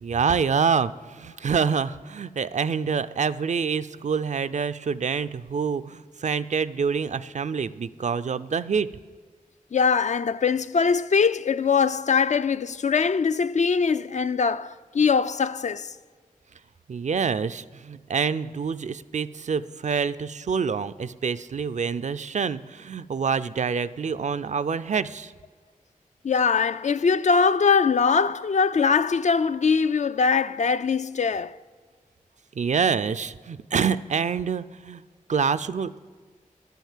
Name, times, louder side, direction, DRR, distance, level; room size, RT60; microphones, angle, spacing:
voice 1, 0.0-8.9 16.9-25.3 32.6-35.0 35.3-36.0, right 6 dB, 55° right, 0.4 m, -26 dB
voice 2, 9.7-16.0 26.2-31.6, left 5 dB, 55° left, 0.4 m, -22 dB
11.0 x 9.2 x 7.3 m
cardioid pair, 55°, 14 cm